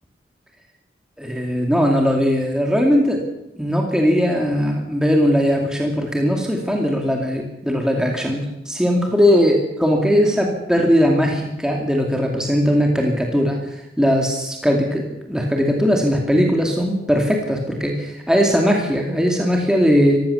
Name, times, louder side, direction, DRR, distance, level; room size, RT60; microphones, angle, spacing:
voice 1, 1.2-3.2 3.6-20.2, equal, 5° right, 1 dB, 2.5 m, -19 dB
24.0 x 15.5 x 7.1 m, 0.88 s
head